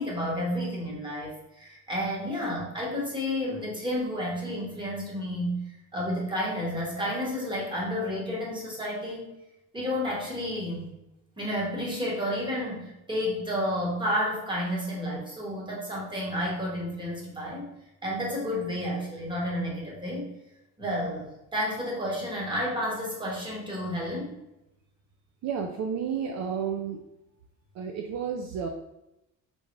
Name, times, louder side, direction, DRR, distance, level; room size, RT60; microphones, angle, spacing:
voice 1, 0.0-5.6 5.9-9.2 9.7-10.9 11.4-17.7 18.0-20.3 20.8-24.3, equal, 15° right, -4 dB, 1.2 m, -31 dB
voice 2, 25.4-27.0 27.8-28.7, right 7 dB, 55° right, 3 dB, 0.5 m, -31 dB
3.7 x 3.6 x 3.2 m, 0.89 s
cardioid pair, 150°, 34 cm